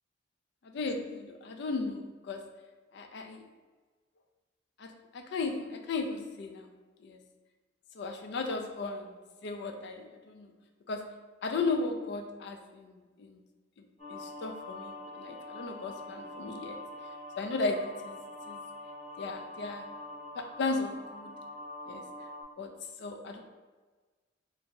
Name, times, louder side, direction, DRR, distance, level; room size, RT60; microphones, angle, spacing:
voice 1, 0.6-2.4 2.9-3.4 4.8-6.7 7.0-7.2 7.9-9.2 9.4-10.5 10.9-13.4 14.1-16.8 17.4-18.2 18.5-18.6 19.2-19.9 20.4-21.3 21.9-22.0 22.6-23.4, left 3 dB, 55° left, 4 dB, 0.4 m, -36 dB
sound 1, 14.0-22.4, left 2 dB, 30° left, 1.4 m, -44 dB
2.8 x 2.6 x 4.3 m, 1.3 s
head